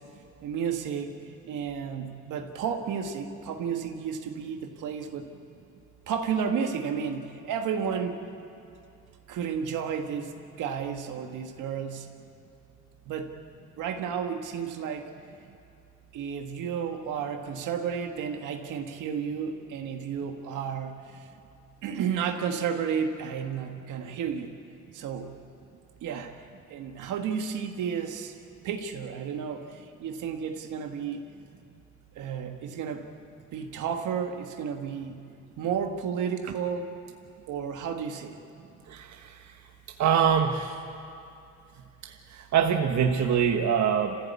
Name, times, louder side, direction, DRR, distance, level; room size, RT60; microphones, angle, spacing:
voice 1, 0.4-1.2 1.4-5.3 6.1-8.2 9.3-12.1 13.1-13.4 13.8-15.1 16.1-21.0 21.8-24.6 24.9-25.3 26.0-26.4 26.7-28.3 28.6-31.2 32.2-33.1 33.5-35.3 35.6-36.9 37.5-38.4, right 7 dB, 85° right, 4 dB, 1.8 m, -32 dB
voice 2, 38.9-39.6 39.9-40.8 42.0-44.2, right 7 dB, 65° right, 4 dB, 1.3 m, -25 dB
27.0 x 15.5 x 8.4 m, 2.6 s
cardioid pair, 90°, 30 cm